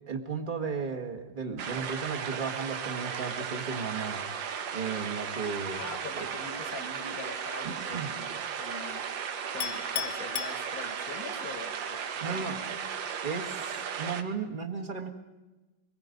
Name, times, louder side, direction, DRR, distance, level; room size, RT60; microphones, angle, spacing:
voice 1, 0.1-4.2 4.7-5.8 6.1-6.3 7.6-8.1 12.2-12.6 13.2-15.1, right 5 dB, 25° right, 3 dB, 1.8 m, -35 dB
sound 1, 1.6-14.2, right 7 dB, 70° right, 1.8 m, -36 dB
voice 2, 5.8-8.3 8.5-9.1 9.5-12.0 12.3-12.5, left 4 dB, 50° left, 8 dB, 1.9 m, -43 dB
Chink clink, 9.6-11.3, left 11 dB, 70° left, 1.5 m, -36 dB
24.5 x 20.5 x 5.3 m, 1.1 s
omnidirectional pair, 2.1 m